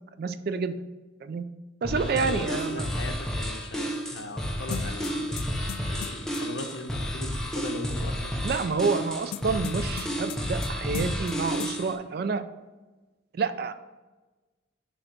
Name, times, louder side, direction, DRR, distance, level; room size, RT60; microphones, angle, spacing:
voice 1, 0.2-0.8 1.2-1.4 1.8-2.9 8.4-12.4 13.3-13.7, right 4 dB, 50° right, 11 dB, 0.3 m, -28 dB
voice 2, 1.8-5.4 5.9-8.4, left 2 dB, 60° left, 5 dB, 0.8 m, -38 dB
sound 1, 1.8-11.9, equal, 5° left, 0.6 m, -31 dB
sound 2, 4.7-6.4 9.3-10.7 10.9-11.3 11.6-11.7, left 10 dB, 90° left, 0.3 m, -37 dB
6.3 x 3.3 x 6.0 m, 1.2 s
head